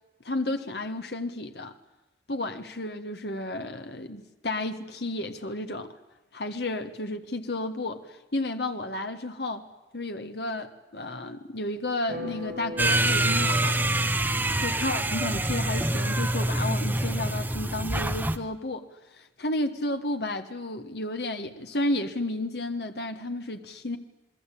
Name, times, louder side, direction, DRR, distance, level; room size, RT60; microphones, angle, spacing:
voice 1, 0.2-1.7 2.3-5.9 6.3-9.7 9.9-13.8 14.6-18.8 19.4-24.0, left 2 dB, 65° left, 1.6 m, -32 dB
sound 1, 12.1-15.8, left 1 dB, 55° right, 2.2 m, -40 dB
sound 2, 12.8-18.4, right 2 dB, 10° right, 0.9 m, -26 dB
28.0 x 21.0 x 8.6 m
head